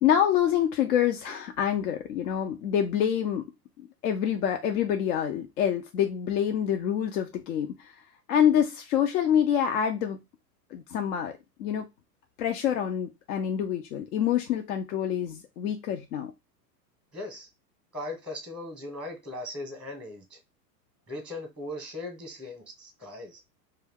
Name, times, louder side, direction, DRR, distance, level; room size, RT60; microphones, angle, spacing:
voice 1, 0.0-3.4 4.0-7.9 8.3-10.2 10.7-11.3 11.6-11.9 12.4-16.3, left 9 dB, 60° left, 0.6 m, -26 dB
voice 2, 17.1-17.5 17.9-20.4 21.1-23.4, left 1 dB, ahead, 0.8 m, -38 dB
2.5 x 2.3 x 3.5 m
hypercardioid pair, 100°, 49 cm